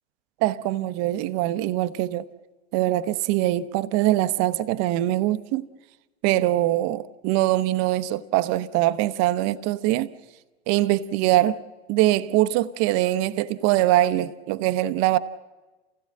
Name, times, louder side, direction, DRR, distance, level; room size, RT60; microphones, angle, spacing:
voice 1, 0.4-2.2 2.7-5.7 6.2-10.1 10.7-11.6 11.9-15.2, right 15 dB, 50° right, 0.8 m, -23 dB
28.5 x 16.5 x 7.6 m
hypercardioid pair, 85°, 31 cm